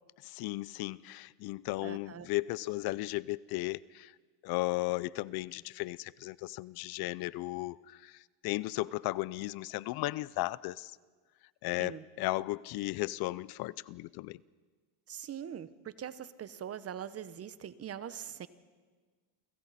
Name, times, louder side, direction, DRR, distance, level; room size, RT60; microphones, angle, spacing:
voice 1, 0.2-4.1 4.4-11.0 11.6-14.4, left 19 dB, 65° left, 21 dB, 0.6 m, -35 dB
voice 2, 1.8-2.3 11.8-12.0 15.1-18.5, right 9 dB, 35° right, 14 dB, 1.0 m, -42 dB
29.0 x 24.5 x 4.2 m, 1.4 s
cardioid pair, 115°, 41 cm